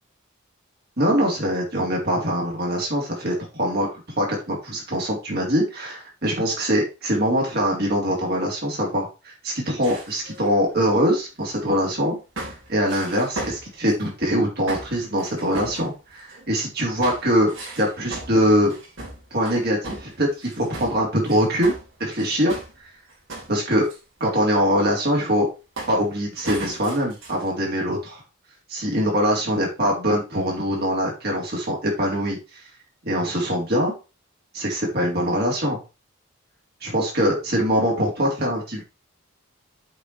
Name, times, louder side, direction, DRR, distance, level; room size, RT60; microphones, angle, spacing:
voice 1, 1.0-3.9 4.2-17.5 17.8-18.8 19.3-21.7 22.0-22.5 23.5-23.9 24.2-25.5 25.9-28.2 28.7-32.4 33.1-33.9 34.5-35.8 36.8-38.8, equal, 50° right, -2 dB, 3.8 m, -23 dB
sound 1, 9.8-11.8 12.4-14.1 14.7-16.5 17.0-22.8 23.1-24.0 25.8-26.0 26.4-27.5, right 2 dB, 65° right, 4.4 m, -37 dB
8.3 x 5.1 x 4.8 m, 0.30 s
head